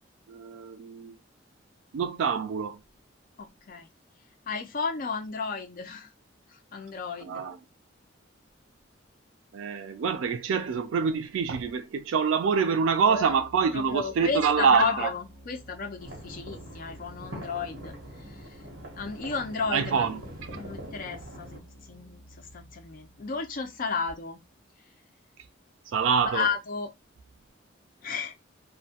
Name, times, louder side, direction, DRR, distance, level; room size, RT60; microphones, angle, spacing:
voice 1, 0.3-1.1 1.9-2.8 7.2-7.6 9.5-15.1 19.7-20.2 25.9-26.5, right 6 dB, 90° right, 0.3 m, -26 dB
voice 2, 3.4-3.9 4.5-6.1 6.7-7.4 13.1-13.3 13.7-17.9 18.2-18.5 19.0-20.3 20.5-24.4 26.2-26.9 28.0-28.3, left 5 dB, 45° left, 0.4 m, -33 dB
sound 1, 12.8-24.5, right 1 dB, 25° right, 0.9 m, -52 dB
sound 2, 16.0-21.6, right 1 dB, 70° right, 0.9 m, -43 dB
2.2 x 2.1 x 2.7 m
head